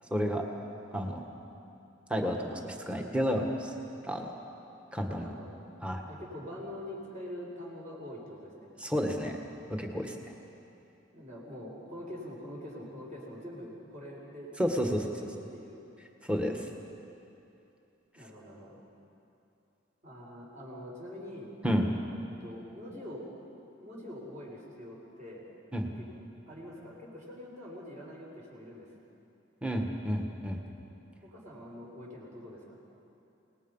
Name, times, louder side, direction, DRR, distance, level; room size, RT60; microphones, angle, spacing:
voice 1, 0.1-0.4 0.9-1.2 2.1-3.7 4.1-4.3 4.9-5.3 5.8-6.0 8.8-9.4 9.7-10.2 14.6-15.0 16.2-16.7 21.6-21.9 25.7-25.9 29.6-30.6, equal, 5° right, 2 dB, 1.6 m, -30 dB
voice 2, 5.1-5.5 6.0-8.7 11.1-15.9 18.1-18.8 20.0-21.5 22.4-23.3 23.8-25.4 26.0-26.1 26.5-28.9 31.2-32.8, left 1 dB, 40° right, -4 dB, 6.0 m, -44 dB
28.0 x 19.0 x 5.6 m, 2.8 s
head